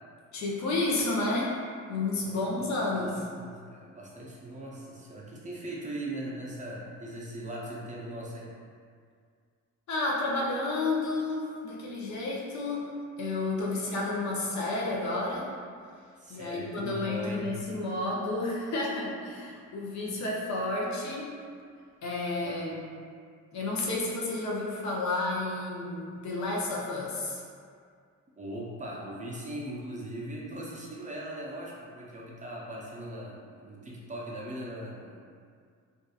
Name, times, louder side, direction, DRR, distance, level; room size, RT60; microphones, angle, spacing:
voice 1, 0.3-1.5 1.9-3.2 9.9-12.9 13.2-15.5 16.3-21.3 22.0-22.9 23.5-27.4, left 2 dB, 65° left, -4 dB, 0.6 m, -31 dB
voice 2, 2.1-8.5 13.6-13.9 16.2-17.5 22.4-22.8 28.4-35.2, right 1 dB, 25° right, -4 dB, 0.4 m, -40 dB
2.7 x 2.3 x 2.3 m, 2.1 s
cardioid pair, 90°, 30 cm